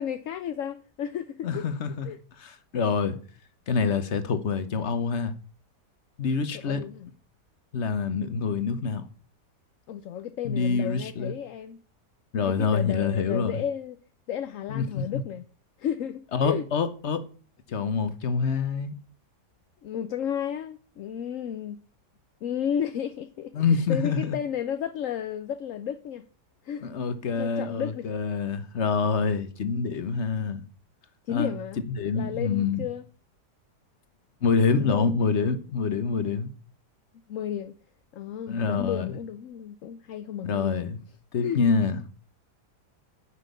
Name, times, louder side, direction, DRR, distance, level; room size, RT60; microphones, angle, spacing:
voice 1, 0.0-1.7 2.0-2.2 6.5-7.1 9.9-11.8 12.4-14.0 14.3-15.4 15.8-16.7 19.8-21.8 22.4-26.2 26.6-26.9 27.4-28.1 31.3-31.8 32.1-33.1 34.8-35.1 37.3-37.8 38.1-40.8 41.4-41.6, left 9 dB, 60° left, 0.9 m, -33 dB
voice 2, 1.4-2.1 2.4-3.2 3.7-5.3 6.2-6.8 7.7-9.0 10.4-11.3 12.3-13.6 14.7-15.0 16.3-17.2 17.7-18.9 23.5-24.4 26.8-30.6 31.3-31.5 31.9-32.8 34.4-36.5 38.5-39.2 40.4-41.0 41.3-42.0, left 5 dB, 45° left, 1.3 m, -26 dB
9.9 x 6.1 x 8.2 m
omnidirectional pair, 1.8 m